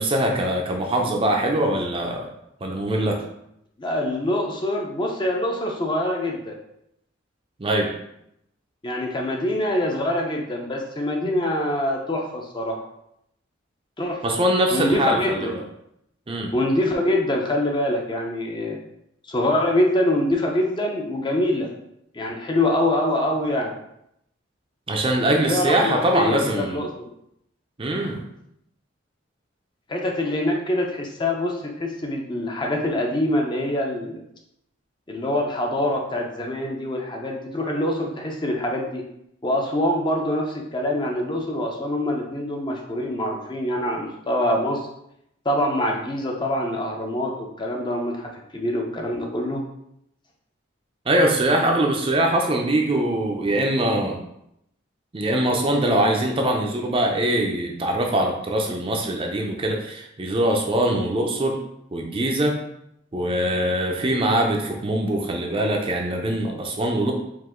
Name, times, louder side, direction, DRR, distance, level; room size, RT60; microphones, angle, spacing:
voice 1, 0.0-2.3 2.6-3.2 7.6-7.9 11.2-11.3 14.2-15.6 16.3-16.5 24.9-26.8 27.8-28.2 51.1-54.2 55.1-61.6 61.9-62.5 63.1-67.1, right 1 dB, 25° right, 1 dB, 0.5 m, -22 dB
voice 2, 3.8-6.5 8.8-12.8 14.0-14.4 14.7-15.5 16.5-18.8 19.3-21.7 22.1-23.7 25.5-27.1 29.9-34.2 35.1-39.0 39.4-44.9 45.4-49.6, left 1 dB, 25° left, 0 dB, 0.6 m, -24 dB
4.8 x 2.5 x 3.7 m, 0.77 s
head